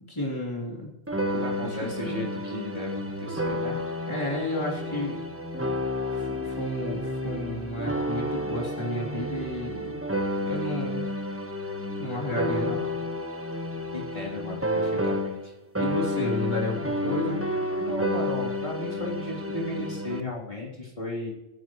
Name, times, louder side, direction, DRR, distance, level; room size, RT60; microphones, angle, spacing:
voice 1, 0.1-0.9 1.6-2.2 4.1-5.2 6.1-10.0 10.4-11.1 12.0-12.8 15.8-17.4, left 1 dB, 25° left, -4 dB, 3.6 m, -32 dB
sound 1, 1.1-15.5 15.8-20.2, left 1 dB, 10° right, 1.2 m, -30 dB
voice 2, 1.3-3.8 13.9-15.5 17.8-21.3, left 2 dB, 40° left, -4 dB, 3.7 m, -35 dB
25.5 x 11.0 x 3.2 m, 1.0 s
omnidirectional pair, 1.2 m